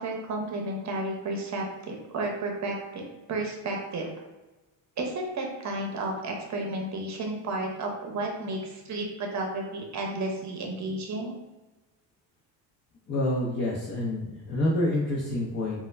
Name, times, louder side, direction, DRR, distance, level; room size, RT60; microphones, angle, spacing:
voice 1, 0.0-3.0 3.3-4.1 5.0-11.4, right 2 dB, 35° right, 1 dB, 0.7 m, -32 dB
voice 2, 13.1-15.8, left 1 dB, 30° left, -4 dB, 0.6 m, -27 dB
2.2 x 2.1 x 3.2 m, 1.1 s
supercardioid pair, 85°, 50 cm